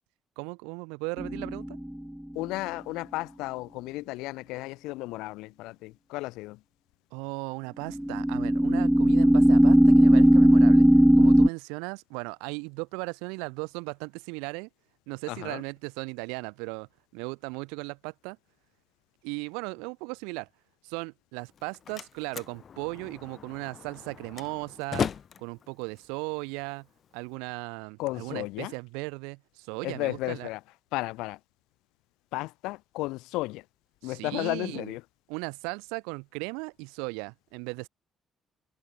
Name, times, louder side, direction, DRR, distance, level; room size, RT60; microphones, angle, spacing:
voice 1, 0.4-1.8 7.1-10.9 11.2-14.7 15.1-18.4 19.2-20.5 20.8-25.1 25.4-26.9 27.1-30.5 34.0-34.9 35.3-37.9, right 32 dB, 80° right, 7.3 m, -37 dB
sound 1, 1.2-1.9 7.9-11.5, equal, 5° right, 1.0 m, -18 dB
voice 2, 2.3-6.6 15.3-15.6 28.0-28.7 29.8-30.6 30.9-31.4 32.3-33.6 34.0-35.0, left 20 dB, 75° left, 6.0 m, -34 dB
Slam, 21.4-27.4, left 7 dB, 50° left, 2.6 m, -38 dB
hypercardioid pair, 50°, 0 cm